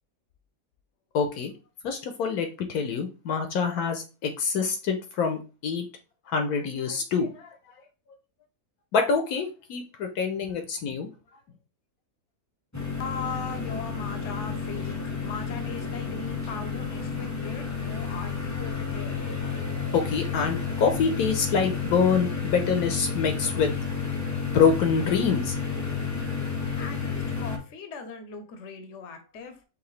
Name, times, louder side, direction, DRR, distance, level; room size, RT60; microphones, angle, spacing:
voice 1, 1.1-1.5 1.8-5.9 6.3-7.5 8.9-11.1 19.9-23.7 24.4-25.6, left 5 dB, 70° left, 1.1 m, -26 dB
sound 1, 12.7-27.6, left 5 dB, 20° left, 0.4 m, -31 dB
voice 2, 13.0-19.2 26.8-29.6, left 5 dB, 55° left, 0.9 m, -39 dB
4.9 x 3.0 x 3.2 m
omnidirectional pair, 1.7 m